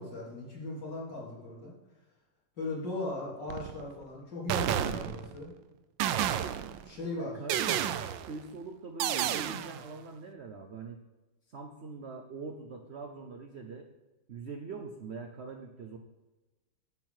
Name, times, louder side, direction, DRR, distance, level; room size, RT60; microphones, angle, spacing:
voice 1, 0.0-1.7 2.6-5.5 6.8-7.3, left 2 dB, 65° left, -6 dB, 4.0 m, -38 dB
sound 1, 3.5-3.9 4.5-5.4 6.0-6.9 7.5-8.4 9.0-9.9, right 10 dB, 75° right, 1.3 m, -31 dB
voice 2, 7.2-8.0 8.3-11.0 11.5-13.9 14.3-16.0, right 4 dB, 60° right, 4 dB, 0.6 m, -43 dB
9.5 x 4.6 x 7.5 m, 1.1 s
omnidirectional pair, 2.1 m